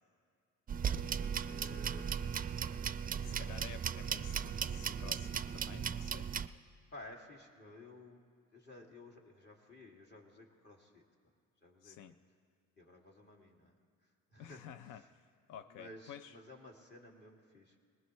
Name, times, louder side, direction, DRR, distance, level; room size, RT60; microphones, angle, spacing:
voice 1, 0.7-2.3 2.6-2.8 6.9-8.2 8.5-11.0 11.6-12.1 12.8-13.8 14.0-15.1 15.7-17.8, left 1 dB, 35° left, 0 dB, 2.5 m, -55 dB
sound 1, 0.7-6.5, right 7 dB, 30° right, 0.4 m, -37 dB
voice 2, 3.2-6.3 11.8-12.1 14.4-16.4, left 9 dB, 90° left, 11 dB, 0.5 m, -52 dB
20.5 x 19.5 x 3.2 m, 2.2 s
cardioid pair, 90°, 30 cm